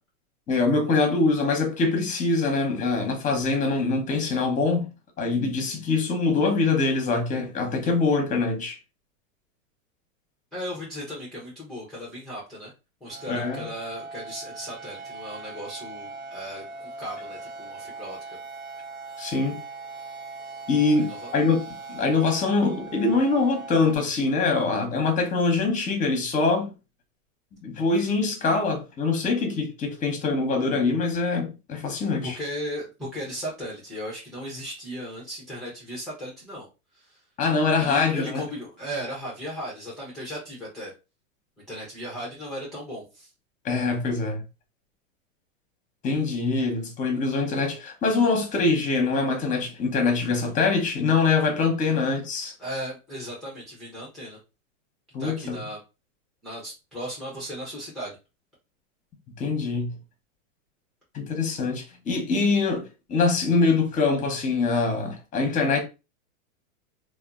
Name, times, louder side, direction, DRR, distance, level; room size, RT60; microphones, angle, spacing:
voice 1, 0.5-4.9 5.2-8.8 13.3-13.6 19.2-19.6 20.7-21.6 21.9-26.7 27.6-32.4 37.4-38.4 43.6-44.4 46.0-52.5 55.1-55.6 59.4-59.9 61.1-65.8, left 3 dB, 20° left, 0.7 m, -24 dB
voice 2, 10.5-12.7 13.0-18.4 21.0-21.5 32.2-36.7 36.9-37.2 37.8-40.9 41.7-43.3 51.8-51.9 52.6-54.4 55.2-55.8 56.4-58.2, equal, ahead, 0.3 m, -36 dB
sound 1, 13.1-24.0, right 3 dB, 80° right, 1.0 m, -40 dB
2.7 x 2.2 x 2.3 m
hypercardioid pair, 125°, 42 cm